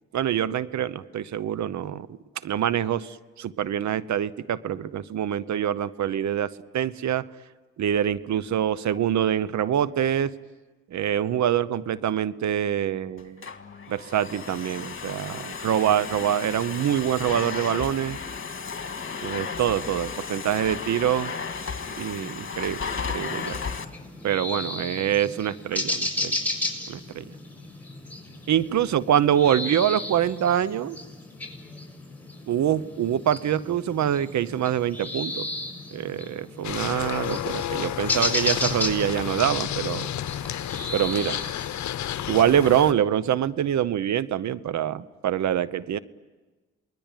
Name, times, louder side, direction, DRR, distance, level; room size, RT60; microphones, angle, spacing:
voice 1, 0.1-2.2 2.4-7.3 7.8-10.3 10.9-13.5 13.9-18.2 19.2-21.3 22.0-23.7 24.2-26.4 26.9-27.2 28.5-31.0 32.5-35.5 35.9-40.1 40.9-41.4 42.3-46.0, right 10 dB, 70° right, 17 dB, 1.0 m, -25 dB
Domestic sounds home sounds, 13.2-23.9, left 5 dB, 45° left, 2.1 m, -34 dB
sound 1, 23.2-42.7, left 2 dB, 5° left, 6.9 m, -34 dB
sound 2, 36.6-42.9, left 12 dB, 70° left, 0.8 m, -31 dB
28.0 x 21.0 x 9.2 m, 1.3 s
cardioid pair, 60°, 29 cm